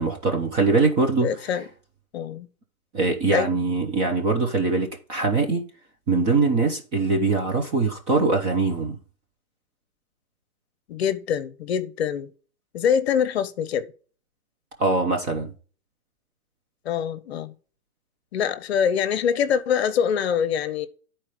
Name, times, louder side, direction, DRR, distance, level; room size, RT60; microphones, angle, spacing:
voice 1, 0.0-1.3 2.9-5.6 6.1-9.0 14.8-15.5, right 3 dB, 15° right, 0.7 m, -22 dB
voice 2, 1.2-1.7 2.1-2.5 3.3-3.6 10.9-12.3 12.7-13.9 16.8-17.5 18.3-20.9, left 8 dB, 50° left, 1.0 m, -24 dB
11.0 x 4.4 x 4.9 m
hypercardioid pair, 160°, 42 cm